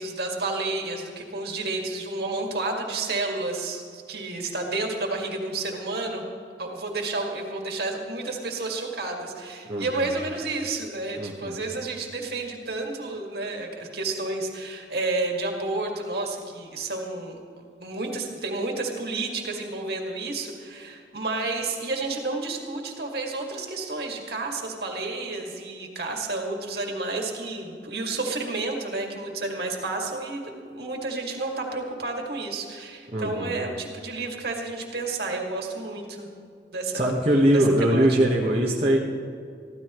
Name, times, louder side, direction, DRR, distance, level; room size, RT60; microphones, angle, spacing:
voice 1, 0.0-6.3 6.6-17.4 17.8-36.3 36.7-37.1 37.5-38.2, right 3 dB, 60° right, 1 dB, 2.2 m, -31 dB
voice 2, 9.7-10.1 11.2-11.6 33.1-33.6 36.9-39.0, right 1 dB, 30° right, -5 dB, 1.3 m, -22 dB
23.5 x 15.0 x 3.1 m, 2.4 s
head